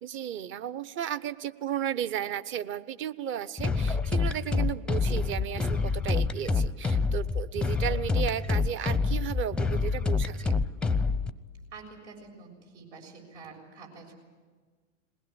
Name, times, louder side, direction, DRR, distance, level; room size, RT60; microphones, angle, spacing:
voice 1, 0.0-10.5, right 10 dB, 30° right, 13 dB, 0.9 m, -34 dB
sound 1, 3.6-11.3, left 4 dB, 5° left, 0.6 m, -27 dB
voice 2, 11.7-14.1, right 4 dB, 70° right, 2 dB, 7.0 m, -47 dB
21.5 x 19.0 x 9.8 m, 1.4 s
hypercardioid pair, 105°, 37 cm